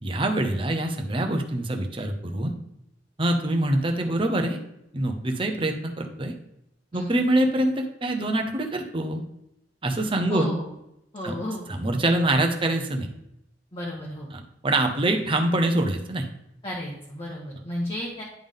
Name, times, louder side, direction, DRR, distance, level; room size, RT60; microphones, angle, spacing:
voice 1, 0.0-2.5 3.2-4.6 4.9-6.3 6.9-9.2 9.8-10.5 11.2-11.3 11.7-13.1 14.3-16.3, right 1 dB, 30° right, 4 dB, 0.8 m, -25 dB
voice 2, 10.3-10.7 11.1-11.6 13.7-14.3 16.6-18.2, left 1 dB, 30° left, -5 dB, 1.2 m, -33 dB
10.5 x 3.6 x 3.7 m, 0.82 s
head